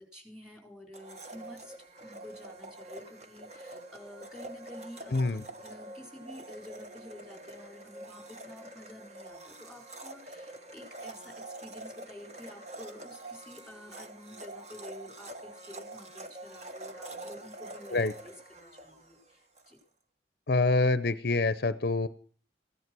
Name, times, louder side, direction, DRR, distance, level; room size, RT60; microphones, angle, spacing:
voice 1, 0.0-1.7 2.0-19.8, left 1 dB, 5° right, 3 dB, 4.0 m, -50 dB
Domestic sounds home sounds, 0.9-19.7, right 2 dB, 35° right, 1.3 m, -46 dB
voice 2, 5.1-5.4 17.9-18.1 20.5-22.1, left 3 dB, 55° left, 15 dB, 0.6 m, -26 dB
15.5 x 11.0 x 6.1 m, 0.43 s
head